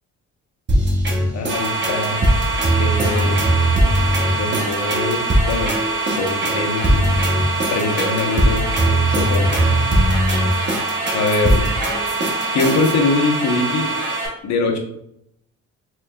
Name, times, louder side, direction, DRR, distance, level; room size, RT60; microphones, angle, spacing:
sound 1, 0.7-12.9, right 1 dB, 35° right, 1.0 m, -19 dB
voice 1, 1.3-2.2 2.8-3.4 4.4-5.7 6.2-7.2 7.7-8.7 9.1-9.6 11.1-11.7 12.5-13.9 14.4-14.8, left 3 dB, 65° left, 2 dB, 0.9 m, -22 dB
sound 2, 1.5-14.3, right 3 dB, 85° right, 1.3 m, -25 dB
4.3 x 3.1 x 2.3 m, 0.76 s
cardioid pair, 90°, 30 cm